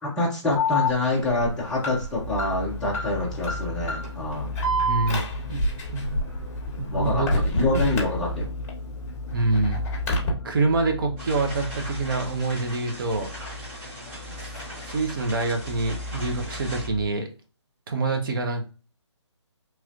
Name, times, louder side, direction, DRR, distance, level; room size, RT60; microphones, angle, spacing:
voice 1, 0.0-4.5 6.9-8.5, left 2 dB, 5° left, -6 dB, 0.5 m, -26 dB
Alarm, 0.5-8.7 9.1-10.3, left 1 dB, 30° left, 1.1 m, -28 dB
sound 1, 2.2-17.1, left 2 dB, 75° left, 0.4 m, -36 dB
voice 2, 4.7-5.2 5.5-5.6 5.9-6.2 6.8-7.4 7.7-7.8 9.3-9.8 10.4-13.3 14.4-14.5 14.8-17.3 17.9-18.6, right 3 dB, 45° right, 4 dB, 0.7 m, -26 dB
sound 2, 11.2-16.9, equal, 15° right, 1.1 m, -40 dB
3.1 x 3.0 x 2.4 m, 0.34 s
hypercardioid pair, 160°, 15 cm